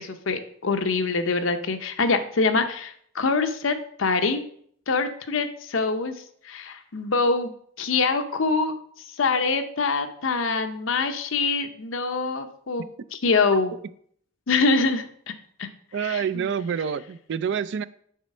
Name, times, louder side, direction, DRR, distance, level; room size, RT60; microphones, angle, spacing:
voice 1, 0.0-4.4 4.9-6.2 6.4-7.5 7.8-8.8 9.2-12.9 13.1-13.8 14.5-15.1 15.6-15.7 16.0-16.5, left 4 dB, 75° left, 8 dB, 0.7 m, -24 dB
voice 2, 15.9-17.9, right 7 dB, 60° right, 16 dB, 0.3 m, -27 dB
7.3 x 4.1 x 5.4 m, 0.64 s
head